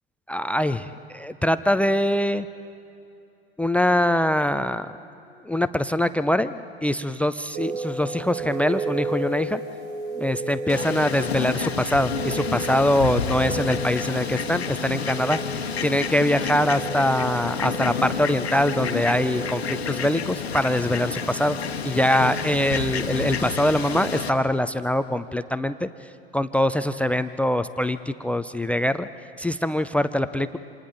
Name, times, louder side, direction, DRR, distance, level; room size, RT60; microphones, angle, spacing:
voice 1, 0.3-2.5 3.6-4.9 5.5-6.6 6.8-9.6 10.2-15.4 15.8-21.6 21.8-25.9 26.3-29.1 29.4-30.6, left 1 dB, 5° left, 14 dB, 0.4 m, -23 dB
sound 1, 7.5-23.9, right 3 dB, 55° right, 3.7 m, -35 dB
Fowl, 10.7-24.3, left 6 dB, 85° left, 1.2 m, -30 dB
28.5 x 27.0 x 3.9 m, 2.7 s
figure-of-eight pair, 90°, 31 cm